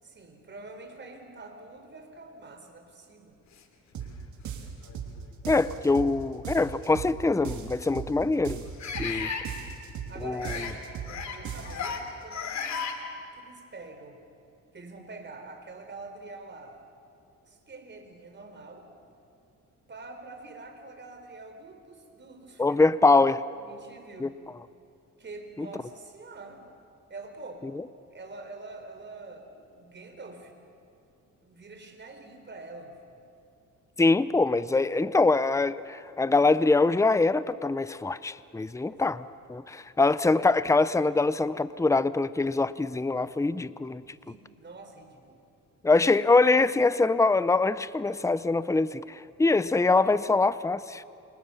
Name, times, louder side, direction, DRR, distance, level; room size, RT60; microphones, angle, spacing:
voice 1, 0.0-3.4 9.1-9.5 10.1-12.9 13.3-14.2 14.7-16.8 17.4-18.9 19.9-23.2 23.6-24.4 25.2-26.6 27.1-27.6 28.1-30.6 31.4-33.2 38.8-39.2 44.1-45.4, right 3 dB, 35° right, 5 dB, 4.5 m, -46 dB
sound 1, 3.9-4.1 4.4-5.1 5.4-6.1 6.4-7.1 7.4-8.1 8.4-9.1 9.4-10.1 10.4-11.1 11.4-11.9, right 8 dB, 70° right, 3.4 m, -37 dB
sound 2, 4.0-4.1 4.8-5.0 6.6-6.7 8.8-9.4 10.4-10.7 11.0-11.4 11.6-12.0 12.3-12.9, left 6 dB, 65° left, 2.8 m, -34 dB
voice 2, 5.5-8.6 9.0-9.3 10.2-10.5 22.6-23.4 24.2-24.3 25.6-25.7 34.0-44.0 45.8-51.0, left 3 dB, 10° left, 15 dB, 0.7 m, -24 dB
28.5 x 26.0 x 7.2 m, 2.6 s
cardioid pair, 90°, 30 cm